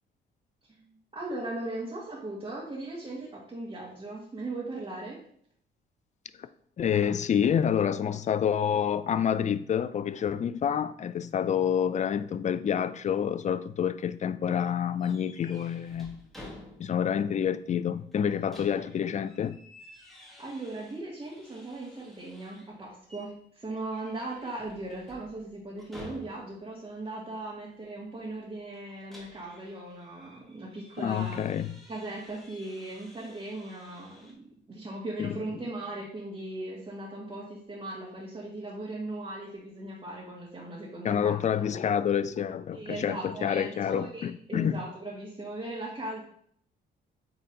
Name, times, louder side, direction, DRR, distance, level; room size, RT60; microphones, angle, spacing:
voice 1, 0.7-5.2 20.4-31.4 31.9-41.4 42.7-46.2, right 2 dB, 25° right, 1.9 m, -38 dB
voice 2, 6.8-16.2 16.8-19.6 31.0-31.8 35.2-35.3 41.0-44.8, left 8 dB, 35° left, 0.4 m, -28 dB
sound 1, 15.0-17.2 17.5-17.6 18.1-22.7 23.1-23.4 23.8-26.7 28.7-34.3, left 1 dB, ahead, 1.7 m, -52 dB
8.6 x 3.9 x 2.8 m
cardioid pair, 90°, 20 cm